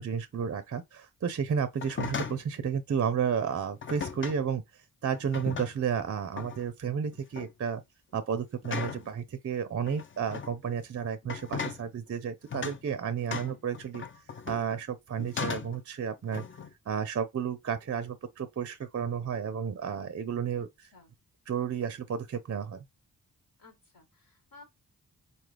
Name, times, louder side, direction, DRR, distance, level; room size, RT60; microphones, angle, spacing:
voice 1, 0.0-4.6 5.0-7.8 8.1-14.0 14.5-16.4 16.9-20.7 21.5-22.8, right 7 dB, 40° right, 0.5 m, -32 dB
sound 1, 1.7-2.5 3.8-4.4 5.1-5.9 6.4-6.7 7.1-7.5 8.6-9.1 9.9-10.5 11.2-11.8 12.5-12.8 13.3-14.8 15.2-15.8 16.3-16.7, left 6 dB, 35° left, 0.5 m, -37 dB
voice 2, 13.1-13.5 20.6-21.1 23.6-24.6, left 3 dB, 65° left, 1.4 m, -56 dB
4.1 x 2.3 x 3.3 m
cardioid pair, 55°, 37 cm